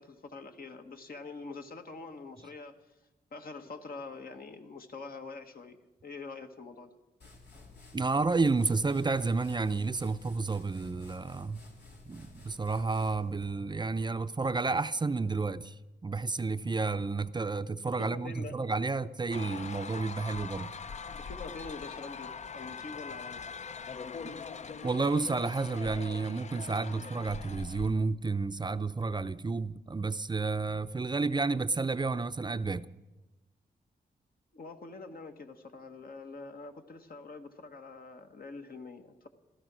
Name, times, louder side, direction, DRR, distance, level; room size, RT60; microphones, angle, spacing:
voice 1, 0.0-2.8 3.3-7.0 18.0-18.5 21.1-23.4 34.5-39.3, left 3 dB, 65° left, 1.5 m, -45 dB
sound 1, 7.2-13.7, left 3 dB, 90° left, 3.3 m, -53 dB
voice 2, 7.9-11.6 12.1-15.8 16.0-20.7 24.2-24.3 24.8-32.9, right 3 dB, 25° right, 0.5 m, -31 dB
sound 2, 19.3-27.9, left 5 dB, 45° left, 0.5 m, -42 dB
16.0 x 13.0 x 6.2 m
cardioid pair, 75°, 17 cm